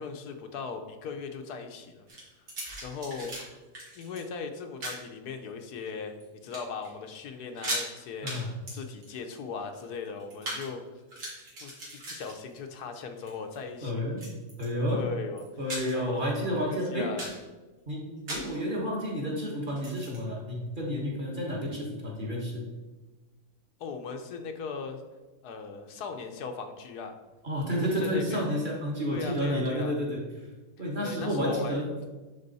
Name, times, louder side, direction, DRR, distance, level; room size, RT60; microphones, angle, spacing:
voice 1, 0.0-2.1 2.4-2.5 2.8-3.4 3.9-6.1 6.4-10.8 11.6-11.7 12.1-14.0 14.9-15.4 15.9-17.3 18.7-18.8 23.8-25.0 25.4-27.2 27.7-28.5 29.1-30.0 31.0-31.8, left 5 dB, 80° left, 6 dB, 1.3 m, -38 dB
sound 1, 2.1-3.4 3.7-4.2 4.8-5.0 5.7-6.2 6.5-6.9 7.1-7.2 7.5-7.9 8.3-8.4 8.7-10.7 11.0-12.8 13.2-13.6 14.2-14.9 15.4-16.1 16.5-16.6 17.0-17.4 18.3-18.6 19.7-20.2, right 1 dB, 80° right, 2.6 m, -38 dB
voice 2, 13.8-14.2 14.6-15.1 15.6-17.1 17.9-22.6 27.4-30.2 30.8-31.9, equal, 35° right, -2 dB, 1.5 m, -30 dB
11.0 x 3.9 x 4.1 m, 1.2 s
omnidirectional pair, 1.7 m